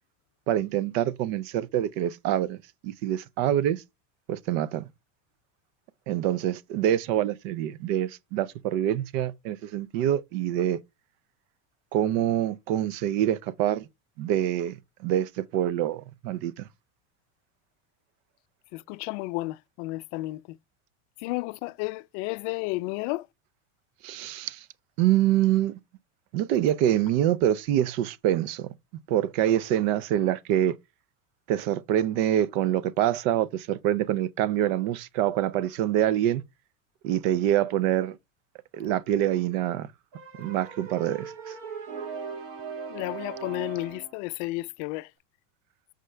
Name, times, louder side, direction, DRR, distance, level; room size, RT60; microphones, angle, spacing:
voice 1, 0.5-2.6 2.8-3.8 4.3-4.9 6.1-10.8 11.9-13.9 14.2-14.8 15.0-16.7 24.0-24.6 25.0-25.8 26.3-28.7 29.1-30.8 31.5-36.4 37.0-38.2 38.7-39.9 40.4-41.5, right 11 dB, 55° right, 0.6 m, -25 dB
voice 2, 18.7-20.4 21.2-23.2 42.9-45.1, left 21 dB, 50° left, 0.5 m, -32 dB
sound 1, 40.1-44.2, right 5 dB, 40° right, 1.7 m, -39 dB
6.5 x 5.1 x 3.3 m
supercardioid pair, 145°, 46 cm